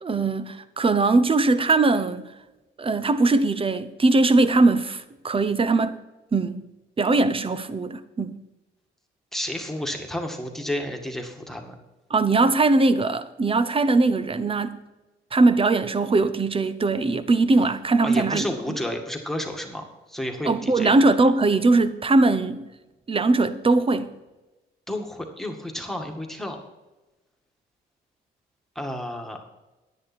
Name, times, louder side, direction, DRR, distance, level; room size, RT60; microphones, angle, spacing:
voice 1, 0.0-2.3 2.8-6.0 6.3-6.6 7.0-8.4 12.1-14.8 15.3-18.8 20.4-22.7 23.1-24.1, right 3 dB, 25° right, 0.9 m, -21 dB
voice 2, 9.3-11.7 18.0-20.9 24.9-26.6 28.8-29.4, left 1 dB, ahead, 2.0 m, -31 dB
10.5 x 10.0 x 4.4 m
cardioid pair, 90°, 20 cm